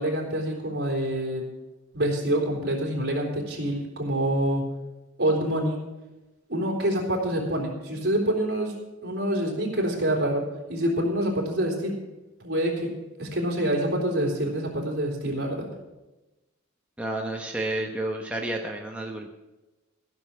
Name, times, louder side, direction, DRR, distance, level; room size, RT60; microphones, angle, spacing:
voice 1, 0.0-1.4 1.9-4.6 5.2-5.8 6.5-8.7 9.0-10.4 10.7-11.9 12.4-12.9 13.2-15.7, right 1 dB, 55° right, 0 dB, 3.6 m, -26 dB
voice 2, 17.0-19.3, right 1 dB, 5° right, 0 dB, 1.0 m, -30 dB
15.0 x 6.9 x 7.2 m, 1.1 s
head